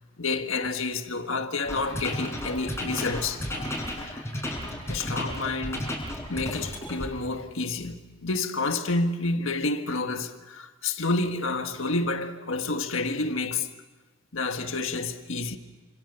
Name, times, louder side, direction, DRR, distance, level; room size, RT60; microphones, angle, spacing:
voice 1, 0.2-4.3 4.9-5.9 6.3-13.7 14.3-15.6, left 3 dB, 70° left, 1.7 m, -29 dB
sound 1, 1.7-7.1, left 1 dB, 10° left, 5.7 m, -33 dB
28.5 x 26.5 x 6.9 m
head